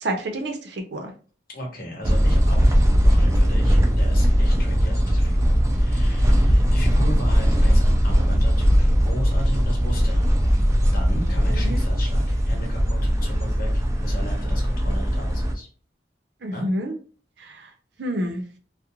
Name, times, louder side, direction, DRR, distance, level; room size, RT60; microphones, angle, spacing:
voice 1, 0.0-1.1 11.4-11.8 16.4-16.9 17.4-17.7 18.0-18.5, right 1 dB, 70° right, 4 dB, 0.6 m, -29 dB
voice 2, 1.5-2.7 3.0-15.7 16.5-16.7, equal, 55° left, 1 dB, 0.9 m, -36 dB
sound 1, 2.0-15.5, equal, 15° right, 0.4 m, -19 dB
2.4 x 2.1 x 2.9 m, 0.39 s
head